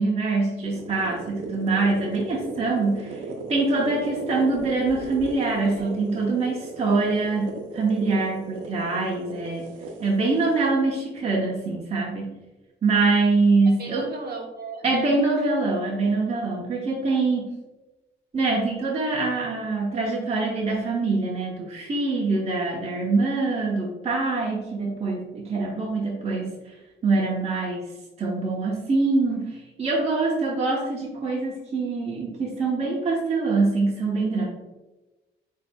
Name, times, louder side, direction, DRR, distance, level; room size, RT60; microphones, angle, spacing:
voice 1, 0.0-3.2 3.5-9.7 10.0-12.4 12.8-14.1 14.8-17.5 18.3-26.6 27.0-27.9 28.2-34.5, right 3 dB, 30° right, -3 dB, 0.9 m, -24 dB
sound 1, 0.6-10.7, right 2 dB, 85° right, 0.7 m, -37 dB
voice 2, 13.6-15.5, right 4 dB, 50° right, 1 dB, 1.2 m, -38 dB
8.1 x 2.8 x 2.3 m, 1.1 s
cardioid pair, 90°, 20 cm